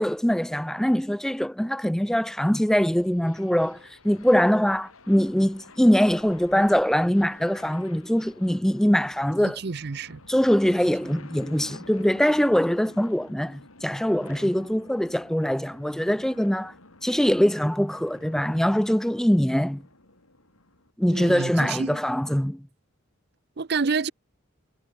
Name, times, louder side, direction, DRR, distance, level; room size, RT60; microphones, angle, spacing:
voice 1, 0.0-3.8 4.0-9.6 10.3-16.7 17.0-19.8 21.0-22.6, equal, ahead, 0.3 m, -23 dB
sound 1, 2.7-20.9, left 2 dB, 85° left, 6.6 m, -50 dB
voice 2, 9.4-10.2 21.1-22.0 23.6-24.1, right 5 dB, 50° right, 0.6 m, -28 dB
head